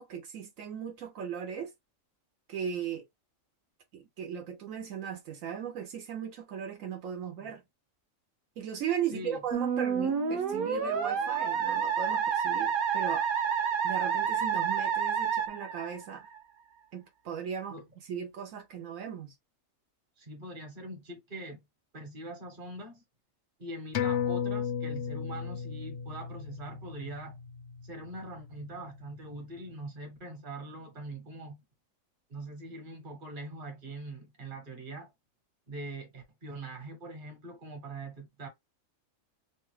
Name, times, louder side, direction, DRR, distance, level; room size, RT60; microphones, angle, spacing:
voice 1, 0.0-1.7 2.5-3.0 3.9-7.6 8.6-13.3 13.8-16.3 16.9-17.8 18.1-19.3, right 8 dB, 80° right, 1.1 m, -37 dB
Musical instrument, 9.5-16.4, right 7 dB, 60° right, 0.5 m, -29 dB
voice 2, 20.2-21.6 21.9-23.0 23.6-27.4 27.8-31.6 32.3-35.1 35.7-38.5, right 2 dB, 40° right, 1.2 m, -43 dB
sound 1, 23.9-28.9 29.2-29.3, left 7 dB, 65° left, 0.6 m, -35 dB
2.9 x 2.2 x 3.1 m
omnidirectional pair, 1.4 m